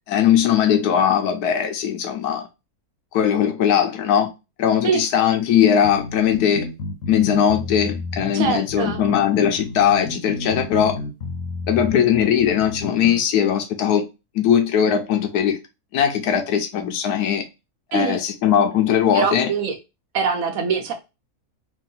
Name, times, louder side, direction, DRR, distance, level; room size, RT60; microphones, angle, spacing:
voice 1, 0.1-2.5 3.1-4.3 4.6-6.7 7.1-11.0 11.7-14.0 14.3-15.6 15.9-17.4 17.9-19.5, left 9 dB, 85° left, 1.2 m, -19 dB
sound 1, 5.8-13.2, left 3 dB, 65° left, 1.0 m, -31 dB
voice 2, 8.3-9.0 17.9-18.2 19.1-19.7 20.1-20.9, right 5 dB, 65° right, 1.2 m, -23 dB
3.7 x 2.5 x 3.8 m
omnidirectional pair, 1.6 m